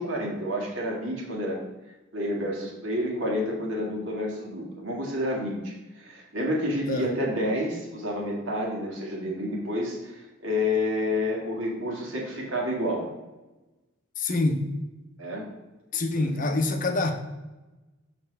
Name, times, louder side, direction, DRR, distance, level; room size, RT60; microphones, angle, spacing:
voice 1, 0.0-1.6 2.1-13.1 15.2-15.5 16.2-16.3, left 1 dB, 75° right, -2 dB, 2.0 m, -29 dB
voice 2, 14.2-14.6 15.9-17.1, left 2 dB, 40° left, 6 dB, 0.7 m, -25 dB
6.7 x 6.0 x 3.3 m, 1.1 s
head